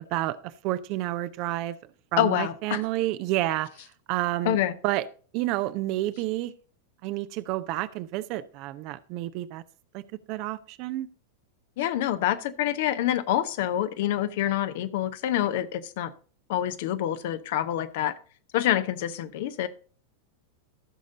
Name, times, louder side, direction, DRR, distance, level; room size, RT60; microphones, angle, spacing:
voice 1, 0.1-1.8 2.1-3.7 4.1-4.6 4.8-5.0 5.3-6.5 7.0-9.6 9.9-10.0 10.3-11.1, right 15 dB, 40° right, 14 dB, 0.6 m, -29 dB
voice 2, 2.2-2.8 4.4-4.7 11.8-16.1 16.5-18.1 18.5-19.7, left 12 dB, 50° left, 12 dB, 0.8 m, -26 dB
14.0 x 6.5 x 3.9 m, 0.40 s
figure-of-eight pair, 90°, 0 cm